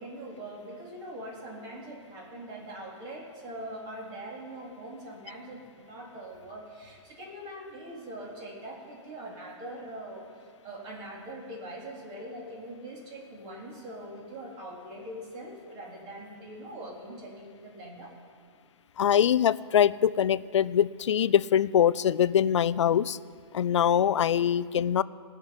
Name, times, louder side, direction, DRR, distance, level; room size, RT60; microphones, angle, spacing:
voice 1, 0.0-18.1 24.1-24.2, right 1 dB, 30° right, -2 dB, 3.7 m, -42 dB
voice 2, 19.0-23.2 23.5-25.0, left 9 dB, 85° left, 18 dB, 0.5 m, -23 dB
18.0 x 6.7 x 9.6 m, 2.2 s
hypercardioid pair, 145°, 15 cm